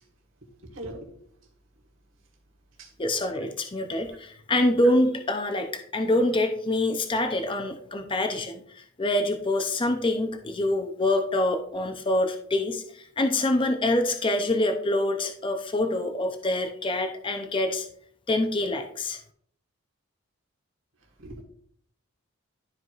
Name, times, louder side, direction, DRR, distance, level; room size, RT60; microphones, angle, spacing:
voice 1, 0.6-1.0 2.8-2.9 21.2-21.4, right 1 dB, 60° right, 0 dB, 1.5 m, -39 dB
voice 2, 3.0-12.8 13.2-17.9 18.3-19.2, left 1 dB, 25° left, 5 dB, 0.6 m, -25 dB
12.0 x 4.7 x 2.4 m, 0.64 s
head